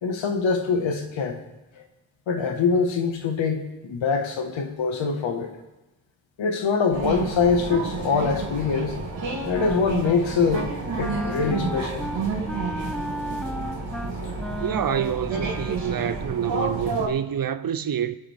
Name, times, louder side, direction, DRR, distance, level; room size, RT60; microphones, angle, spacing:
voice 1, 0.0-1.4 2.3-5.5 6.4-9.0 9.5-10.7 11.0-12.0, left 5 dB, 80° left, 1.7 m, -24 dB
sound 1, 6.9-17.1, right 3 dB, 80° right, 3.4 m, -30 dB
Wind instrument woodwind instrument, 9.1-10.2 10.5-10.7 11.0-16.3, equal, ahead, 0.5 m, -35 dB
voice 2, 14.6-18.2, right 9 dB, 50° right, 0.7 m, -27 dB
20.5 x 7.3 x 3.6 m
cardioid pair, 70°, 45 cm